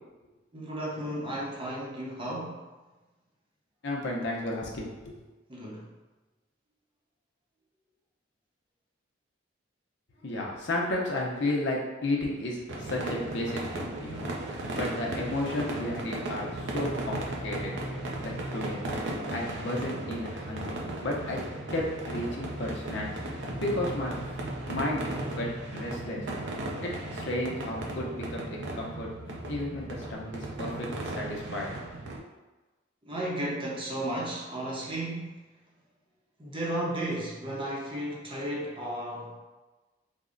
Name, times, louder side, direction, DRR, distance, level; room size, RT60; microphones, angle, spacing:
voice 1, 0.5-2.7 5.5-5.9 33.0-35.4 36.4-39.4, right 1 dB, 30° right, -4 dB, 0.7 m, -34 dB
voice 2, 3.8-5.3 10.2-14.3 14.7-17.7 18.2-18.8 19.3-21.4 21.7-23.1 23.4-24.1 24.6-25.0 25.3-26.3 26.8-29.1 29.5-31.7, left 1 dB, 65° left, -2 dB, 0.7 m, -33 dB
sound 1, 12.7-32.2, right 2 dB, 65° right, 0.5 m, -36 dB
sound 2, 16.5-30.1, equal, 5° left, 0.8 m, -43 dB
3.5 x 2.1 x 3.7 m, 1.2 s
head